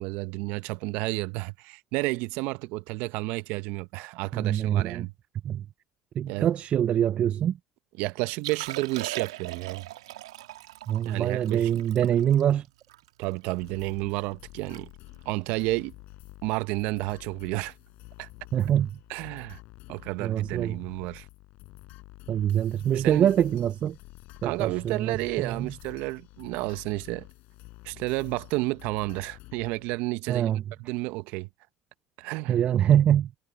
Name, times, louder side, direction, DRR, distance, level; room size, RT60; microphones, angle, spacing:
voice 1, 0.0-5.1 6.3-6.5 8.0-9.9 11.0-11.8 13.2-14.9 15.2-15.9 16.4-17.7 18.2-18.3 19.1-19.6 19.9-21.3 22.9-23.3 24.4-27.3 27.8-30.5 30.8-31.5 32.2-32.6, right 22 dB, 70° right, 1.0 m, -31 dB
voice 2, 4.3-5.1 5.4-5.6 6.2-7.6 10.9-12.6 18.5-18.9 20.2-20.8 22.3-24.0 24.4-25.7 30.3-30.6 32.5-33.3, right 10 dB, 50° right, 0.5 m, -24 dB
Liquid, 8.3-13.7 14.2-14.3 14.5-14.8 15.1-15.3 15.9-16.2 17.6-17.7, right 15 dB, 85° right, 2.4 m, -40 dB
sound 1, 13.6-30.0, left 21 dB, 70° left, 6.7 m, -49 dB
hypercardioid pair, 70°, 3 cm